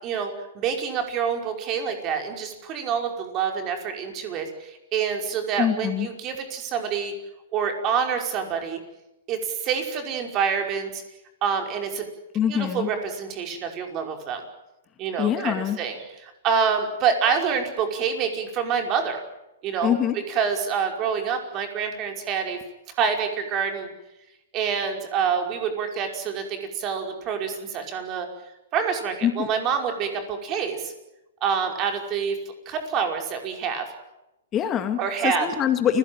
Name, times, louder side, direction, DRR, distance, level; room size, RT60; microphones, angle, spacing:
voice 1, 0.0-7.1 7.5-8.8 9.3-11.0 11.4-12.1 12.5-14.4 15.0-16.0 16.4-19.2 19.6-19.9 20.3-22.6 23.0-23.9 24.5-28.3 28.7-30.9 31.4-32.4 32.7-33.9 35.0-35.5, right 6 dB, 35° right, 4 dB, 5.3 m, -27 dB
voice 2, 5.6-6.1 12.3-12.9 15.2-15.8 19.8-20.2 29.2-29.5 34.5-36.0, left 9 dB, 25° left, 7 dB, 2.2 m, -24 dB
29.5 x 17.0 x 9.0 m, 0.94 s
hypercardioid pair, 115°, 0 cm